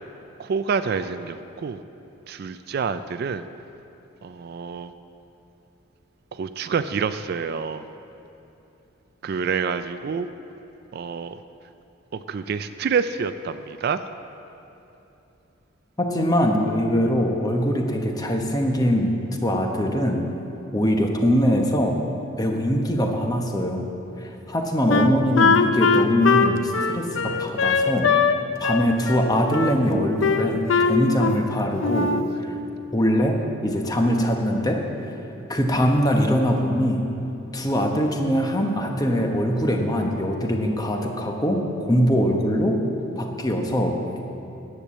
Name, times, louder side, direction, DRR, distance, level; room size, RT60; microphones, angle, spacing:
voice 1, 0.4-1.8 2.3-3.4 4.2-4.9 6.3-7.9 9.2-10.3 10.9-11.4 12.1-14.1, right 5 dB, 50° right, 11 dB, 0.3 m, -27 dB
voice 2, 16.0-19.1 19.4-20.2 20.7-22.0 22.4-23.9 24.2-28.1 28.6-32.5 32.9-33.4 33.6-34.8 35.5-37.1 37.5-42.8 43.2-44.0, equal, 20° left, 2 dB, 0.9 m, -22 dB
Wind instrument woodwind instrument, 24.9-28.4 28.6-29.8 30.2-31.5 31.8-32.3, left 5 dB, 65° left, 0.6 m, -21 dB
10.0 x 8.4 x 7.2 m, 2.9 s
head